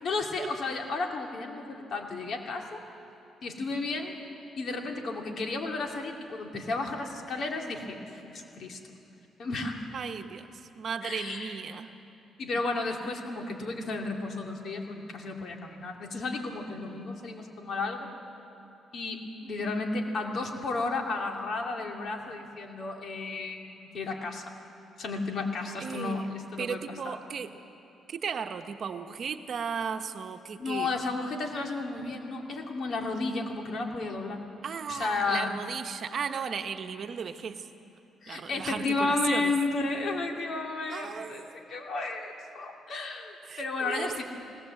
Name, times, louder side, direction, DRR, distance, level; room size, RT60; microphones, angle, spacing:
voice 1, 0.0-2.8 3.4-4.2 4.6-8.8 9.4-9.8 11.0-11.6 12.4-18.1 18.9-19.2 19.5-24.4 25.0-26.8 27.0-27.2 30.6-34.4 34.9-35.5 38.2-41.4 41.7-44.2, left 3 dB, 60° left, 2 dB, 2.6 m, -33 dB
voice 2, 9.9-11.9 19.4-19.7 25.8-26.3 26.6-27.5 28.1-30.9 34.6-37.7 38.3-39.5 40.9-41.5 43.4-44.2, right 6 dB, 55° right, 7 dB, 1.0 m, -35 dB
19.5 x 19.0 x 7.8 m, 2.9 s
cardioid pair, 90°, 0 cm